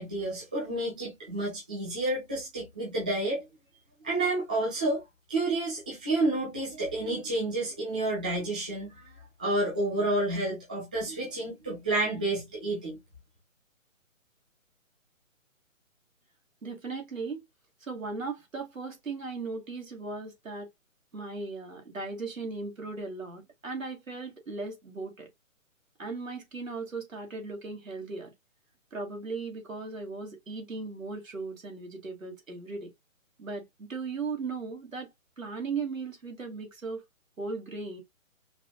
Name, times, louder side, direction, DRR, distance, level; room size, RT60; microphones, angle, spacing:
voice 1, 0.0-3.4 4.0-5.0 5.3-13.0, right 2 dB, 5° right, 0.5 m, -30 dB
voice 2, 16.6-17.4 17.8-20.7 21.1-25.3 26.0-28.3 28.9-32.9 33.4-35.1 35.4-37.0 37.4-38.0, right 4 dB, 70° right, 2.4 m, -37 dB
4.9 x 3.3 x 2.2 m
figure-of-eight pair, 140°, 41 cm